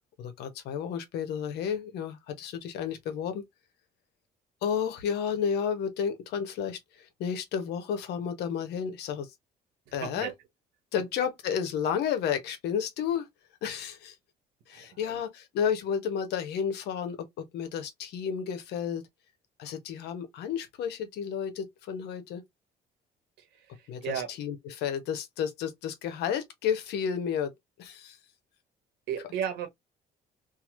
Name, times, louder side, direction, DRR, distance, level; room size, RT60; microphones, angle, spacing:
voice 1, 0.2-3.4 4.6-9.3 9.9-10.3 10.9-13.3 13.6-14.2 14.7-19.0 19.6-22.4 23.9-27.5 27.8-28.2, left 7 dB, 80° left, 0.9 m, -32 dB
voice 2, 9.9-10.3 14.7-15.2 23.4-24.3 29.1-29.7, right 9 dB, 80° right, 1.2 m, -35 dB
2.9 x 2.7 x 2.5 m
cardioid pair, 110°, 17 cm